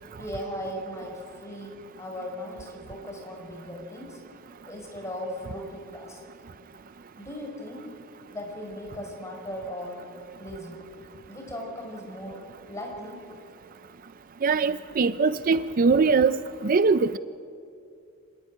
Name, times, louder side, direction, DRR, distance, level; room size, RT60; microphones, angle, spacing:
voice 1, 0.2-1.1 1.4-4.2 4.7-6.2 7.2-7.8 8.3-10.0 10.4-10.9 11.3-12.4 12.7-13.1, equal, 15° left, -1 dB, 5.3 m, -37 dB
voice 2, 14.4-16.4 16.6-17.2, right 4 dB, 40° right, 14 dB, 0.4 m, -21 dB
25.5 x 13.0 x 9.8 m, 2.6 s
head